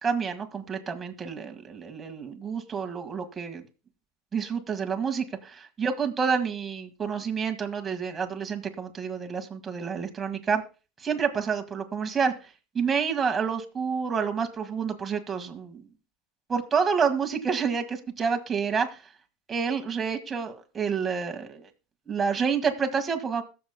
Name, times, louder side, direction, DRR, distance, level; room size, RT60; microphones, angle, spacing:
voice 1, 0.0-3.6 4.3-10.6 11.0-12.3 12.7-15.8 16.5-19.0 19.5-21.7 22.1-23.4, right 6 dB, 25° right, 4 dB, 1.8 m, -28 dB
21.0 x 7.1 x 2.2 m, 0.32 s
hypercardioid pair, 100°, 0 cm